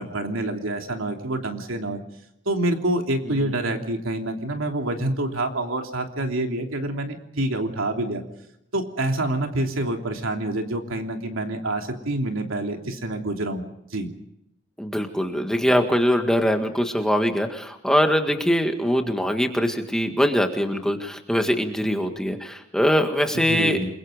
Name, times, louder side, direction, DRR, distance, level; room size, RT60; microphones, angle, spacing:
voice 1, 0.0-2.0 2.4-8.2 8.7-13.6 13.9-14.1 23.3-23.9, right 1 dB, 80° right, 3 dB, 3.1 m, -27 dB
voice 2, 14.8-23.8, equal, 5° left, 4 dB, 1.8 m, -22 dB
29.0 x 22.5 x 5.1 m, 0.79 s
head